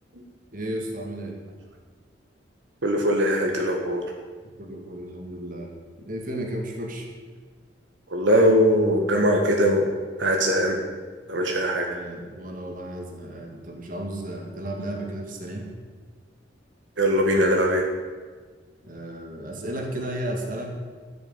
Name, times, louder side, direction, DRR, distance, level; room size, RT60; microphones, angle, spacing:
voice 1, 0.5-1.4 4.6-5.7 6.0-7.1 11.9-15.7 18.8-20.7, right 1 dB, 45° right, 1 dB, 2.3 m, -33 dB
voice 2, 2.8-4.0 8.1-9.9 10.2-10.8 11.3-11.9 17.0-17.8, equal, 80° right, 1 dB, 1.6 m, -21 dB
13.0 x 6.9 x 8.9 m, 1.5 s
head